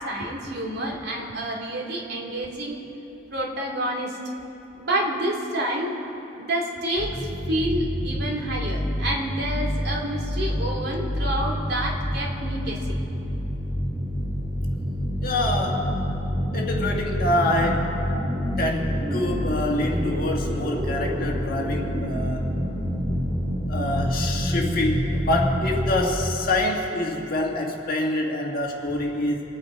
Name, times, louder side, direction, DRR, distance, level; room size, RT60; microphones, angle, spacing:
voice 1, 0.0-2.8 3.3-4.2 4.8-6.0 6.4-7.2 7.5-12.8 15.7-15.8 18.1-18.2, right 1 dB, 60° right, -1 dB, 2.3 m, -28 dB
sound 1, 7.0-26.0, equal, 45° right, 3.6 m, -27 dB
voice 2, 15.2-15.8 16.5-17.9 18.6-22.4 23.7-29.4, left 1 dB, 55° left, -1 dB, 1.9 m, -26 dB
25.0 x 8.8 x 4.8 m, 3.0 s
head